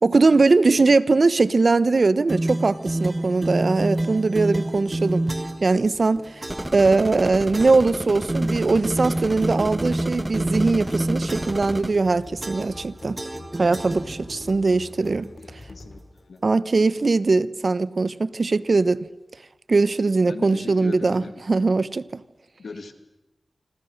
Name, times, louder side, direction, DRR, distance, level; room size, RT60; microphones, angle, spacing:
voice 1, 0.0-5.2 5.6-6.4 6.7-13.2 13.6-15.3 16.4-19.1 19.7-22.2, right 3 dB, 60° right, 1.0 m, -20 dB
sound 1, 2.3-5.7 6.4-6.8 7.5-7.9 8.3-11.7 12.4-12.9 13.2-14.5, right 1 dB, 30° right, 1.9 m, -28 dB
sound 2, 4.2-16.0, left 2 dB, 55° left, 4.4 m, -44 dB
sound 3, 6.5-11.9, right 1 dB, 15° right, 1.5 m, -32 dB
voice 2, 15.2-16.0 16.3-16.4 20.2-21.3 22.6-22.9, left 4 dB, 85° left, 2.3 m, -38 dB
26.5 x 26.5 x 6.6 m
cardioid pair, 45°, 0 cm